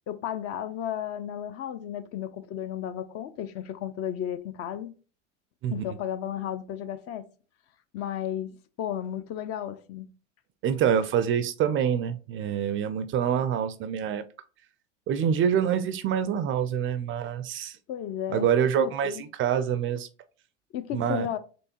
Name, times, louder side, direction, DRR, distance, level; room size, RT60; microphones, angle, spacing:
voice 1, 0.1-4.9 5.7-7.2 7.9-10.1 17.9-18.5 18.8-19.2 20.7-21.4, left 10 dB, 40° left, 0.5 m, -33 dB
voice 2, 10.6-14.2 15.1-17.8 18.3-20.1 20.9-21.3, right 8 dB, 35° right, 0.4 m, -26 dB
4.3 x 3.1 x 2.8 m
hypercardioid pair, 80°, 37 cm